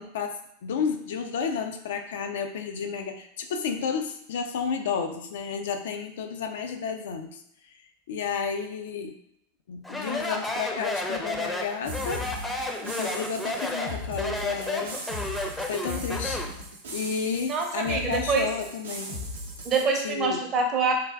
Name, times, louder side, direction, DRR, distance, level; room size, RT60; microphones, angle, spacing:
voice 1, 0.0-7.4 8.1-9.2 9.7-12.2 12.8-15.0 15.6-16.4 16.9-19.2 20.0-20.4, left 6 dB, 70° left, 6 dB, 0.3 m, -31 dB
Speech, 9.8-16.6, left 2 dB, 5° left, 0.5 m, -32 dB
sound 1, 11.8-19.8, left 1 dB, 80° right, 0.6 m, -38 dB
voice 2, 17.5-18.5 19.6-20.9, right 4 dB, 35° right, 2 dB, 0.6 m, -25 dB
3.3 x 2.4 x 2.3 m, 0.75 s
hypercardioid pair, 90°, 0 cm